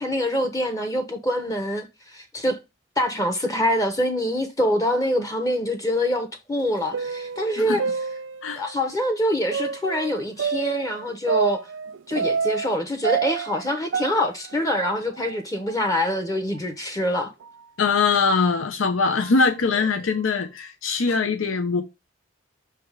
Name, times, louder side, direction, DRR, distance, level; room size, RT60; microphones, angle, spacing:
voice 1, 0.0-1.9 2.1-2.6 3.0-7.8 8.6-11.6 12.1-17.3, equal, 15° left, 0.7 m, -25 dB
sound 1, 6.6-8.8 9.5-12.8 13.0-15.4 15.7-15.8 16.5-16.6 17.4-17.6 18.3-18.4 19.2-19.5, right 6 dB, 70° right, 0.4 m, -29 dB
voice 2, 17.8-21.8, left 4 dB, 90° left, 0.7 m, -22 dB
5.7 x 3.4 x 4.8 m
head